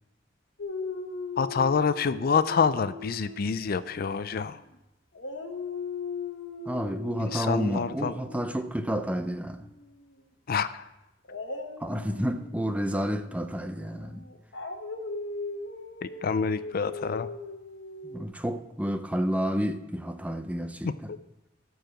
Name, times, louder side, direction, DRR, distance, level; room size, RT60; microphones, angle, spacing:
Dog, 0.6-4.8 5.1-10.1 11.2-18.2, left 4 dB, 90° left, 1.1 m, -39 dB
voice 1, 1.4-4.6 7.2-8.1 10.5-10.8 16.0-17.3 20.8-21.2, left 5 dB, 55° left, 0.4 m, -27 dB
voice 2, 6.7-9.7 11.8-14.2 18.0-21.1, equal, 10° right, 0.6 m, -30 dB
13.5 x 4.8 x 7.7 m
head